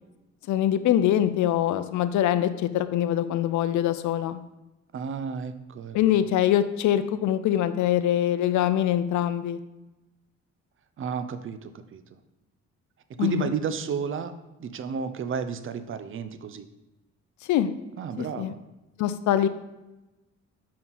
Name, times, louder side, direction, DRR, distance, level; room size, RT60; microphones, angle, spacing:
voice 1, 0.5-4.4 5.9-9.6 13.2-13.5 17.5-17.7 18.2-18.5 19.0-19.5, left 11 dB, 75° left, 12 dB, 0.5 m, -23 dB
voice 2, 4.9-6.0 11.0-12.0 13.1-16.7 18.0-18.6, right 6 dB, 45° right, 11 dB, 0.5 m, -32 dB
5.8 x 4.3 x 3.9 m, 1.0 s
cardioid pair, 90°, 30 cm